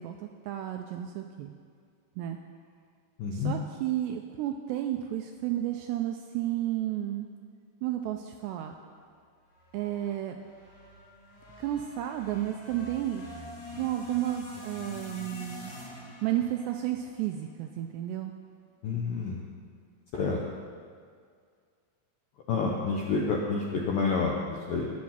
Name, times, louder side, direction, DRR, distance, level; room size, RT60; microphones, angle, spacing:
voice 1, 0.0-1.5 2.2-2.4 3.3-7.3 7.8-8.8 9.7-10.4 11.6-13.2 13.7-15.7 16.2-18.3, right 12 dB, 85° right, 4 dB, 2.5 m, -32 dB
voice 2, 3.2-3.6 18.8-19.4 20.1-20.4 22.5-24.9, left 4 dB, 80° left, -1 dB, 2.0 m, -29 dB
sound 1, 9.5-17.9, left 2 dB, 50° left, 4.9 m, -46 dB
19.5 x 7.5 x 5.7 m, 2.1 s
omnidirectional pair, 5.4 m